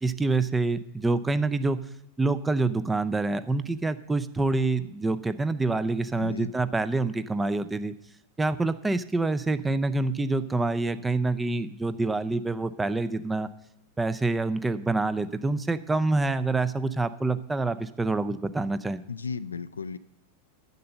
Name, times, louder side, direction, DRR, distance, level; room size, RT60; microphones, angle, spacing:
voice 1, 0.0-1.8 2.2-7.9 8.4-13.5 14.0-19.0, right 3 dB, 10° right, 13 dB, 0.5 m, -26 dB
voice 2, 6.2-6.5 19.1-20.0, left 5 dB, 75° left, 13 dB, 0.4 m, -34 dB
10.5 x 7.7 x 6.7 m, 0.87 s
figure-of-eight pair, 90°, 0 cm